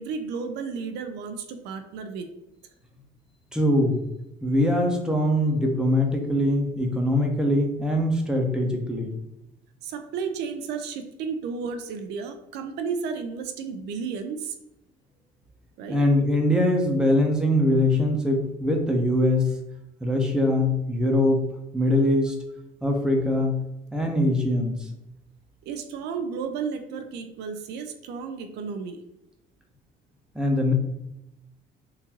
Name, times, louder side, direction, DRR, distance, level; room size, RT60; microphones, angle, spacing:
voice 1, 0.0-2.3 9.8-14.5 15.8-16.0 25.7-29.0, right 5 dB, 85° right, 6 dB, 0.5 m, -33 dB
voice 2, 3.5-4.0 4.4-9.2 15.9-19.5 20.0-21.5 21.7-22.4 22.8-23.6 23.9-24.8 30.3-30.7, left 1 dB, 5° right, 1 dB, 0.7 m, -22 dB
3.8 x 2.6 x 2.9 m, 0.88 s
cardioid pair, 110°, 17 cm